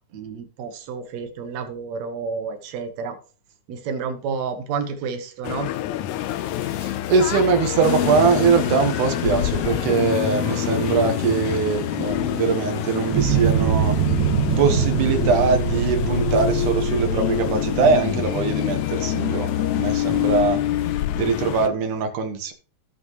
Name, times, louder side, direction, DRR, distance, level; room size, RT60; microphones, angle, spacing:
voice 1, 0.1-3.2 3.7-5.7, right 5 dB, 65° right, 7 dB, 2.4 m, -30 dB
sound 1, 5.4-21.7, left 13 dB, 80° left, 1.9 m, -27 dB
voice 2, 6.7-14.0 14.6-20.6 21.2-22.5, right 5 dB, 85° right, 6 dB, 2.9 m, -22 dB
sound 2, 7.8-20.4, left 7 dB, 60° left, 2.3 m, -30 dB
sound 3, 13.1-18.9, right 6 dB, 45° right, 2.7 m, -24 dB
16.5 x 5.8 x 3.1 m, 0.37 s
omnidirectional pair, 3.5 m